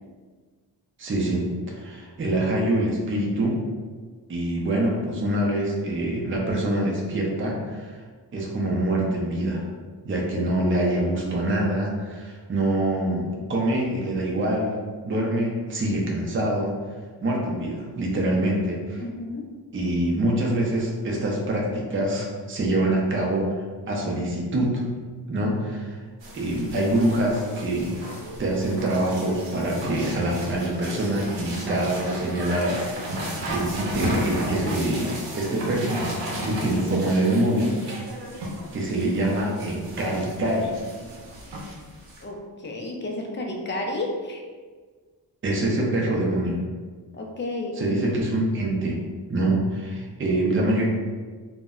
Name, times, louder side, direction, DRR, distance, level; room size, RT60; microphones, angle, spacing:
voice 1, 1.0-3.6 4.3-8.0 8.3-9.6 10.0-14.8 15.0-16.7 17.2-19.0 19.7-24.8 25.3-26.0 26.3-28.1 28.4-37.8 38.7-40.7 45.4-46.6 47.8-49.0 49.3-50.9, right 1 dB, 30° right, -2 dB, 0.4 m, -25 dB
voice 2, 19.0-19.4 42.2-44.4 47.1-47.8, left 2 dB, 30° left, 1 dB, 0.3 m, -31 dB
sound 1, 26.2-42.2, equal, 90° right, 0.7 m, -34 dB
2.1 x 2.0 x 3.5 m, 1.5 s
wide cardioid pair, 130°, 42 cm